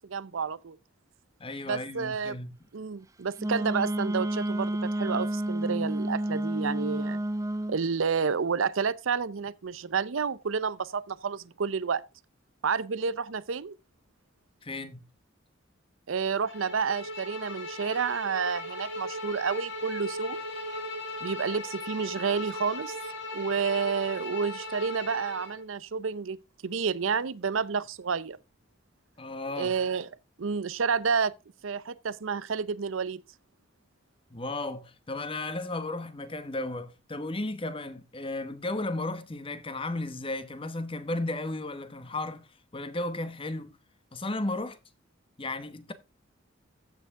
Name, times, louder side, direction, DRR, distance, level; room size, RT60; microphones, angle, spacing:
voice 1, 0.1-0.8 1.7-2.4 2.7-7.2 7.7-12.0 12.6-13.7 16.1-20.4 21.2-23.0 23.3-28.4 29.6-30.1 30.4-31.3 31.6-33.2, right 5 dB, 75° right, 0.6 m, -30 dB
voice 2, 1.4-2.5 14.6-15.0 29.2-29.7 34.3-42.5 42.7-43.8 44.1-44.8 45.4-45.9, left 2 dB, 25° left, 1.0 m, -34 dB
Wind instrument woodwind instrument, 3.4-7.8, right 1 dB, 15° right, 0.8 m, -30 dB
Bowed string instrument, 16.4-25.6, left 1 dB, 60° left, 6.0 m, -38 dB
14.5 x 6.8 x 3.6 m
head